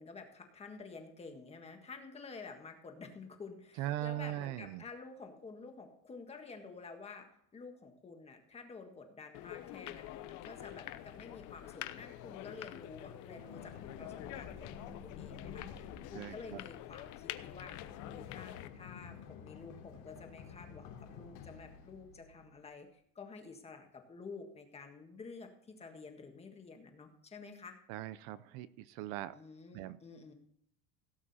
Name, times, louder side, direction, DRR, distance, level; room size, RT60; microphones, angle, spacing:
voice 1, 0.0-17.7 18.1-27.8 29.3-30.3, left 4 dB, 15° left, 4 dB, 1.6 m, -50 dB
voice 2, 3.8-4.8 16.1-16.6 27.9-29.3 29.7-30.0, right 14 dB, 55° right, 15 dB, 0.6 m, -40 dB
sound 1, 9.3-18.7, left 14 dB, 50° left, 0.9 m, -47 dB
Run, 12.9-22.7, left 7 dB, 85° left, 3.2 m, -51 dB
17.0 x 8.7 x 4.2 m, 0.71 s
cardioid pair, 170°, 39 cm